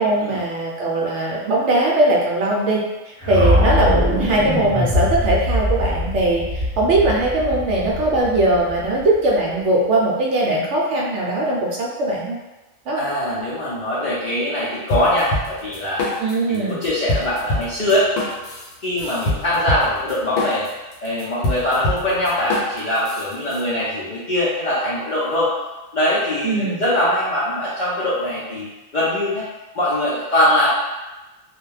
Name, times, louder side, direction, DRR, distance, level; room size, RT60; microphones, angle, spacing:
voice 1, 0.0-2.8 3.3-12.4 12.9-13.1 16.2-16.8 26.4-26.8, right 2 dB, 70° right, -3 dB, 0.8 m, -20 dB
sound 1, 3.2-9.3, left 1 dB, 10° left, 1.1 m, -22 dB
voice 2, 12.9-16.1 16.5-18.1 18.8-20.7 21.0-25.5 25.9-29.5 29.7-30.7, left 1 dB, 55° left, -10 dB, 0.5 m, -22 dB
sound 2, 14.9-16.6 16.8-23.6, left 2 dB, 85° left, 1.1 m, -25 dB
2.4 x 2.1 x 3.1 m, 1.1 s
omnidirectional pair, 1.4 m